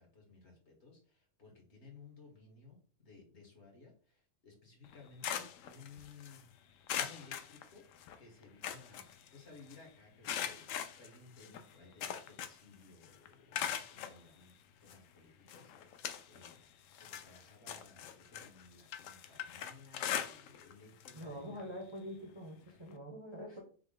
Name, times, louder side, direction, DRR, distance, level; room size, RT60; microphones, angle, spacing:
voice 1, 0.0-6.4 6.9-7.8 8.2-14.5 14.8-16.6 17.0-21.7 22.7-22.8 23.5-23.6, left 4 dB, 60° left, 0 dB, 1.9 m, -58 dB
sound 1, 4.8-6.4 6.9-8.2 8.4-9.8 10.2-12.7 13.0-14.2 14.9-15.0 15.5-16.6 16.9-20.7 21.0-21.2 21.6-21.7 22.9-23.0, left 9 dB, 80° left, 0.9 m, -41 dB
voice 2, 21.1-23.6, equal, 25° right, 0 dB, 0.8 m, -45 dB
5.9 x 2.2 x 3.8 m, 0.42 s
omnidirectional pair, 1.3 m